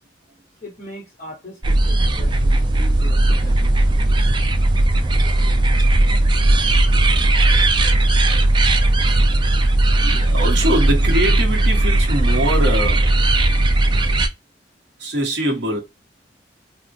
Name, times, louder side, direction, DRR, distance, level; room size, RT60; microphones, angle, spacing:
voice 1, 0.6-3.9, equal, 45° left, 1.2 m, -39 dB
sound 1, 1.6-14.3, right 2 dB, 25° right, 0.4 m, -17 dB
voice 2, 10.0-13.1 15.0-15.8, right 1 dB, 70° right, 1.0 m, -23 dB
3.6 x 2.1 x 2.5 m
head